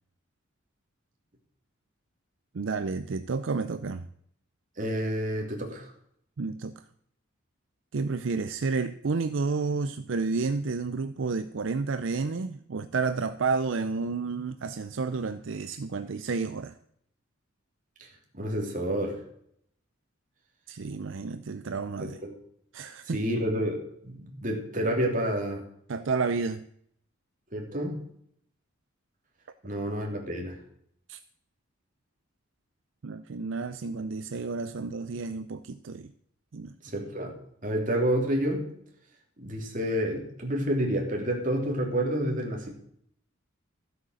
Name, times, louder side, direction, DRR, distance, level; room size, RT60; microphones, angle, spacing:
voice 1, 2.5-4.1 6.4-6.7 7.9-16.8 20.7-22.2 22.7-23.2 25.9-26.6 31.1-31.2 33.0-36.1 36.5-36.7, right 4 dB, 70° right, 11 dB, 0.5 m, -31 dB
voice 2, 4.8-5.9 18.0-18.1 18.3-19.2 22.0-22.3 23.0-25.6 27.5-28.0 29.6-30.6 36.8-37.3 37.6-38.7 39.4-42.7, equal, 40° right, 1 dB, 2.9 m, -29 dB
14.0 x 8.0 x 6.3 m, 0.69 s
head